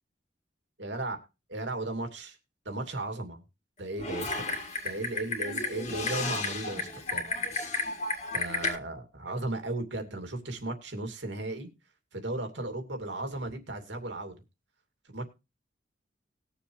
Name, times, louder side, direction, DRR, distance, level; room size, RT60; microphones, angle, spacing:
voice 1, 0.8-1.2 1.5-2.4 2.6-3.4 3.8-7.3 8.3-11.7 12.1-14.4 15.1-15.2, right 2 dB, 80° right, 5 dB, 2.6 m, -36 dB
Typing, 4.0-8.8, left 3 dB, 40° left, 2.0 m, -33 dB
20.0 x 7.1 x 3.2 m, 0.27 s
head